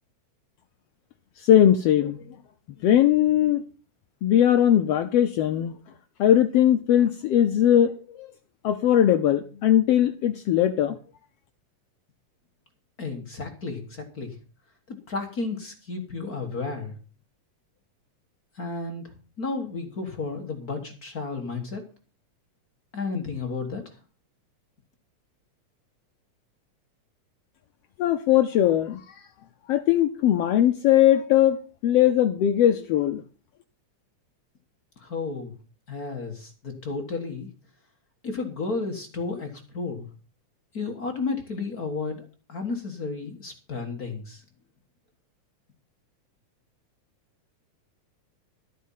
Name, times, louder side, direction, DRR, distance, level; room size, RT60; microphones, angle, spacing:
voice 1, 1.4-2.4 2.7-3.6 4.2-5.7 6.2-8.3 8.6-11.0 28.0-29.3 29.7-31.6 31.8-33.2, left 11 dB, 85° left, 9 dB, 1.3 m, -20 dB
voice 2, 13.0-14.3 14.9-16.9 18.5-21.8 22.9-23.8 35.0-35.5 35.9-37.5 38.2-40.1 40.7-44.4, left 4 dB, 40° left, 4 dB, 1.4 m, -32 dB
13.0 x 8.4 x 5.6 m, 0.37 s
omnidirectional pair, 3.6 m